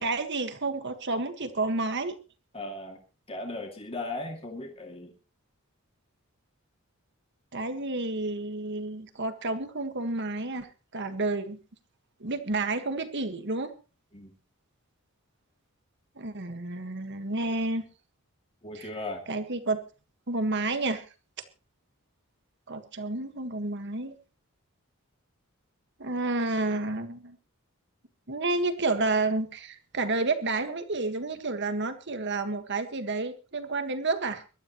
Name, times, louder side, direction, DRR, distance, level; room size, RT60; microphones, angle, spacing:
voice 1, 0.0-2.2 7.5-10.7 10.9-11.6 12.2-13.7 16.2-17.9 18.7-18.9 19.3-19.8 20.3-21.0 22.7-24.1 26.0-27.4 28.3-34.4, right 3 dB, 50° right, 9 dB, 1.7 m, -30 dB
voice 2, 2.5-3.0 3.3-5.1 14.1-14.3 18.6-19.2, left 2 dB, 25° left, 2 dB, 2.5 m, -37 dB
23.0 x 12.5 x 3.1 m, 0.32 s
head